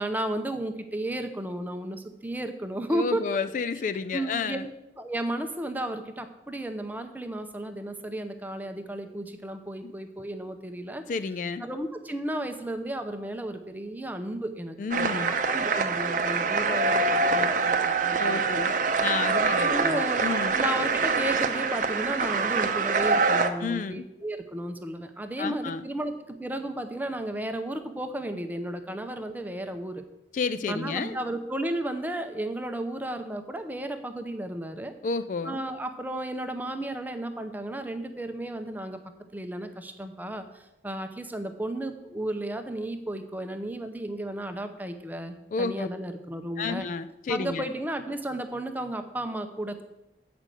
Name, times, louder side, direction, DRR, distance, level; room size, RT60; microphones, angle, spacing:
voice 1, 0.0-3.2 4.1-4.7 5.0-11.0 11.6-18.6 19.6-20.3 20.6-30.0 30.7-34.9 35.4-39.0 39.3-46.9 47.3-49.8, right 1 dB, 10° right, 7 dB, 0.6 m, -33 dB
voice 2, 2.9-4.7 9.8-9.9 11.1-11.7 14.8-15.4 18.2-18.7 19.0-20.6 23.6-24.0 25.4-25.8 30.3-31.2 35.0-35.6 45.5-45.9 46.6-47.7, left 5 dB, 45° left, 12 dB, 0.3 m, -31 dB
sound 1, 14.9-23.5, right 4 dB, 50° right, 0.6 m, -25 dB
8.1 x 5.1 x 7.5 m, 0.91 s
head